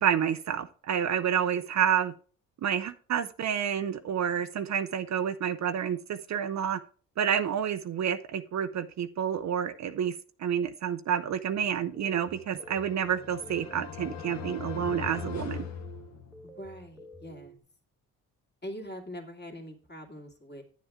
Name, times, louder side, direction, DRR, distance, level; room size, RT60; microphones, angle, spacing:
voice 1, 0.0-2.1 2.6-6.8 7.2-15.7, right 8 dB, 50° right, 11 dB, 0.6 m, -29 dB
sound 1, 11.5-17.6, right 2 dB, 10° right, 1.1 m, -51 dB
sound 2, 12.2-16.7, left 7 dB, 50° left, 1.3 m, -41 dB
voice 2, 16.4-17.5 18.6-20.6, equal, 30° left, 1 dB, 2.4 m, -43 dB
10.0 x 7.2 x 3.6 m, 0.42 s
cardioid pair, 75°, 35 cm